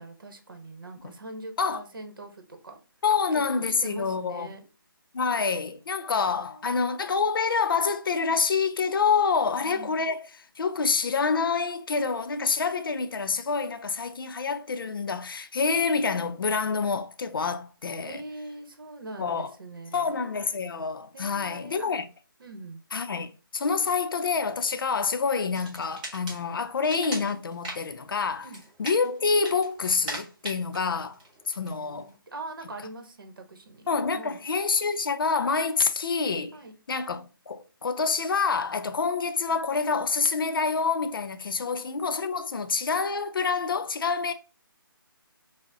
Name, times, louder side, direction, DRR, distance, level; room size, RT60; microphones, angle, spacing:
voice 1, 0.0-2.8 3.3-4.7 6.0-6.6 9.4-9.9 18.0-20.2 21.1-21.9 22.4-22.8 28.4-28.6 31.7-34.4 36.5-36.7 41.6-41.8, right 2 dB, 65° right, 0.9 m, -43 dB
voice 2, 3.0-4.5 5.1-18.2 19.2-19.5 19.9-22.0 22.9-28.5 28.8-31.2 31.5-32.1 33.9-36.6 36.9-44.3, left 5 dB, 70° left, 0.5 m, -27 dB
sound 1, 25.5-32.2, right 1 dB, 20° right, 0.9 m, -41 dB
5.2 x 2.1 x 2.5 m
figure-of-eight pair, 160°, 12 cm